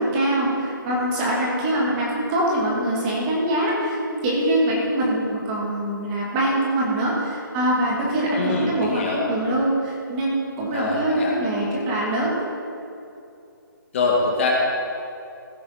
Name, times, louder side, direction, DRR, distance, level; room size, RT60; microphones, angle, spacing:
voice 1, 0.0-12.4, right 1 dB, 20° right, -4 dB, 2.2 m, -23 dB
voice 2, 8.3-9.3 10.7-11.3 13.9-14.5, left 3 dB, 35° left, -2 dB, 1.9 m, -24 dB
16.0 x 7.7 x 4.2 m, 2.6 s
hypercardioid pair, 160°, 12 cm